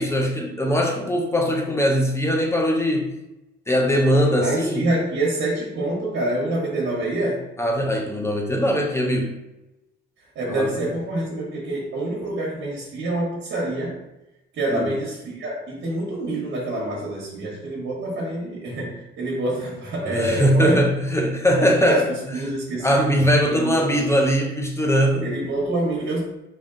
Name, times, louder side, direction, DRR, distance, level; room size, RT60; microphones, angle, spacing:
voice 1, 0.0-3.1 3.7-4.9 7.6-9.4 10.5-10.9 14.7-14.9 20.0-22.1 22.4-25.3, equal, 15° left, 1 dB, 0.7 m, -21 dB
voice 2, 4.4-7.4 10.3-14.0 14.5-20.8 21.6-23.1 23.5-24.1 25.2-26.2, right 1 dB, 65° right, -5 dB, 1.2 m, -26 dB
3.4 x 2.7 x 3.7 m, 0.94 s
cardioid pair, 90°, 20 cm